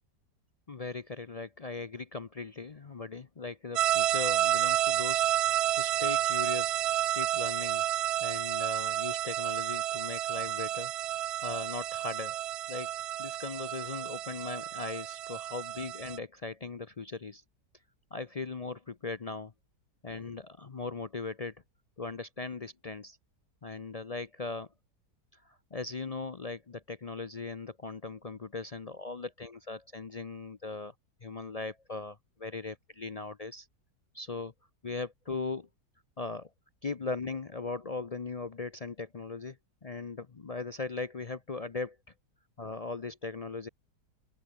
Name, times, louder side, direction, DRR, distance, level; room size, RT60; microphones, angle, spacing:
voice 1, 0.7-6.8 7.1-7.8 8.2-10.9 11.4-12.4 12.7-12.9 13.2-17.4 18.1-19.5 20.0-21.6 22.0-23.2 23.6-24.7 25.3-30.9 31.2-33.7 34.1-34.5 34.8-35.7 36.2-36.5 36.8-42.0 42.6-43.7, left 3 dB, 50° left, 0.4 m, -39 dB
sound 1, 3.8-16.2, right 12 dB, 85° right, 0.5 m, -30 dB
open air
omnidirectional pair, 1.7 m